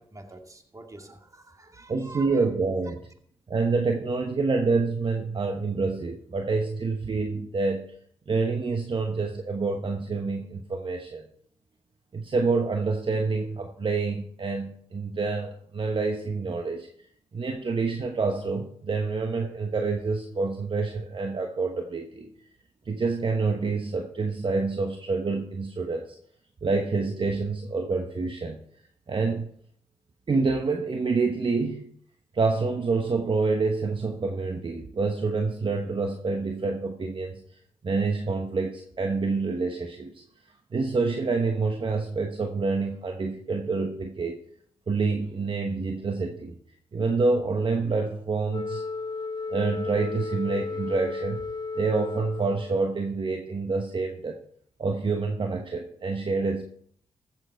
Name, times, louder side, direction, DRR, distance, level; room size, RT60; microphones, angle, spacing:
voice 1, 0.0-2.4, right 2 dB, 30° right, 4 dB, 2.2 m, -46 dB
voice 2, 1.9-3.1 3.5-7.9 8.3-11.2 12.1-16.9 17.3-22.3 22.9-26.2 26.6-28.6 29.1-29.5 30.3-31.9 32.3-37.6 37.8-40.2 40.7-44.4 44.9-46.6 46.9-48.8 49.5-51.4 51.8-54.4 54.8-56.6, right 4 dB, 45° right, 5 dB, 1.1 m, -27 dB
Wind instrument woodwind instrument, 48.5-52.9, left 4 dB, 40° left, 1.5 m, -34 dB
14.5 x 7.5 x 4.5 m, 0.63 s
supercardioid pair, 45°, 12 cm